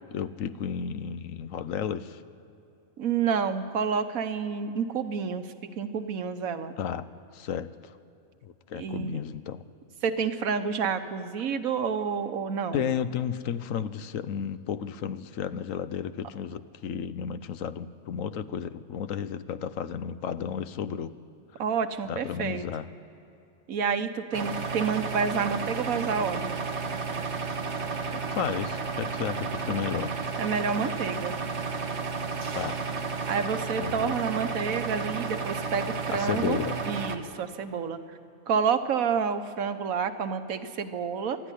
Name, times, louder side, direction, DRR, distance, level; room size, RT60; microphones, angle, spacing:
voice 1, 0.1-2.2 6.8-7.1 7.3-7.9 8.4-9.6 12.7-21.1 22.1-22.9 28.1-30.1 32.5-32.8 33.8-34.1 36.1-36.8, left 8 dB, 75° left, 13 dB, 1.1 m, -33 dB
voice 2, 3.0-5.5 5.8-6.7 8.8-9.2 10.0-12.9 21.6-22.6 23.7-26.6 30.4-31.4 33.3-36.6 36.9-38.0 38.5-41.4, right 6 dB, 90° right, 9 dB, 1.4 m, -29 dB
sound 1, 24.3-37.2, right 4 dB, 55° right, 1.4 m, -32 dB
23.5 x 12.0 x 10.0 m, 2.7 s
omnidirectional pair, 1.4 m